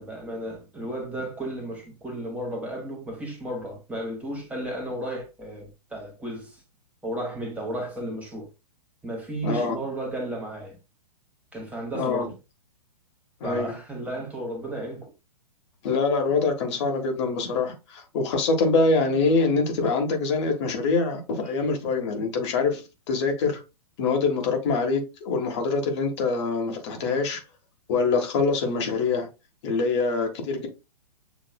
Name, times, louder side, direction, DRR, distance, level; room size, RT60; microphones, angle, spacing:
voice 1, 0.0-6.6 7.0-8.5 9.0-10.8 11.5-12.3 13.4-15.1 21.4-21.6, right 1 dB, 5° right, 1.4 m, -34 dB
voice 2, 9.4-9.8 11.9-12.3 13.4-13.7 15.8-22.8 23.1-23.6 24.0-27.4 27.9-29.3 29.6-30.7, left 4 dB, 45° left, 1.4 m, -24 dB
7.2 x 3.1 x 2.3 m
figure-of-eight pair, 115°, 20 cm